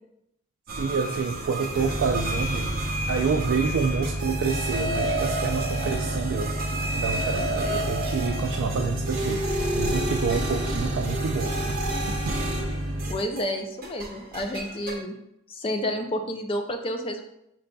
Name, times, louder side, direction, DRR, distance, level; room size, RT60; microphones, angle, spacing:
sound 1, 0.7-13.6 13.8-15.0, right 1 dB, 45° right, 0.7 m, -31 dB
voice 1, 0.7-2.7 3.1-6.5 6.9-12.4, right 5 dB, 65° right, 2 dB, 0.3 m, -28 dB
sound 2, 1.7-13.1, equal, 15° right, 0.9 m, -31 dB
voice 2, 13.1-15.2 15.5-17.2, equal, 25° left, 5 dB, 0.4 m, -30 dB
5.3 x 3.9 x 2.3 m, 0.80 s
head